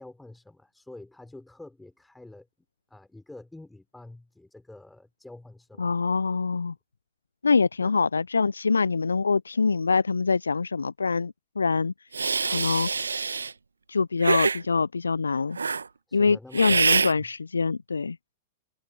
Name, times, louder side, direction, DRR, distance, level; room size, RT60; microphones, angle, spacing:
voice 1, 0.0-2.5 2.9-5.9 7.8-8.0 16.1-16.8 17.1-17.3, left 2 dB, 5° left, 4.3 m, -47 dB
voice 2, 5.8-6.7 7.4-11.9 12.4-12.9 13.9-15.6 16.1-18.2, left 4 dB, 80° left, 0.4 m, -24 dB
Hiss, 12.1-13.5 14.2-14.6 15.6-15.8 16.5-17.1, right 5 dB, 80° right, 1.3 m, -25 dB
figure-of-eight pair, 100°, 0 cm